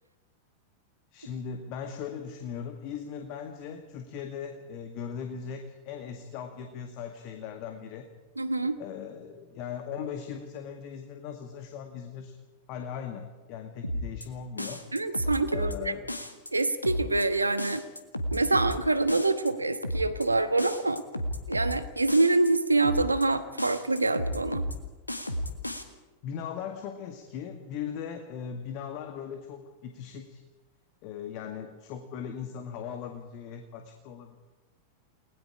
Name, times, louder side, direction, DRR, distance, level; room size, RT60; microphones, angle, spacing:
voice 1, 1.1-8.1 8.8-12.4 12.7-14.8 15.5-16.1 26.2-30.4 31.0-34.4, left 7 dB, 45° left, 5 dB, 1.9 m, -39 dB
voice 2, 8.4-8.8 14.9-15.9 16.5-17.8 18.3-21.0 21.5-24.6, right 2 dB, 80° right, 11 dB, 1.2 m, -26 dB
sound 1, 13.8-14.3 14.6-15.8 16.1-16.5 16.8-17.3 17.6-18.8 19.1-19.5 19.8-20.3 20.6-21.8 22.1-22.5 22.8-23.3 23.6-24.8 25.1-25.8, equal, 85° left, 1.8 m, -33 dB
30.0 x 20.0 x 4.9 m, 1.2 s
figure-of-eight pair, 90°, 0 cm